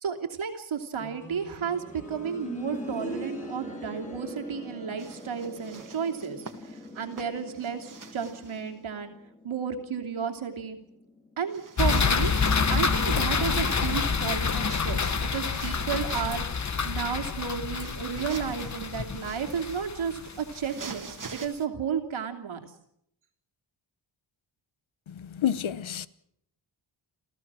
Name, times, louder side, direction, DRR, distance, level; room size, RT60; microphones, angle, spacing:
voice 1, 0.0-9.1 9.4-10.8 11.4-12.4 12.7-15.0 15.3-22.6, right 7 dB, 75° right, 2.9 m, -33 dB
sound 1, 1.0-11.8 13.1-13.2, equal, 15° left, 4.2 m, -42 dB
sound 2, 5.0-8.7 11.5-16.5 17.5-21.5, right 4 dB, 40° right, 2.0 m, -46 dB
sound 3, 11.8-20.9, left 5 dB, 35° left, 1.2 m, -27 dB
voice 2, 25.1-26.1, left 10 dB, 75° left, 1.0 m, -29 dB
29.0 x 15.0 x 6.2 m
wide cardioid pair, 170°, 48 cm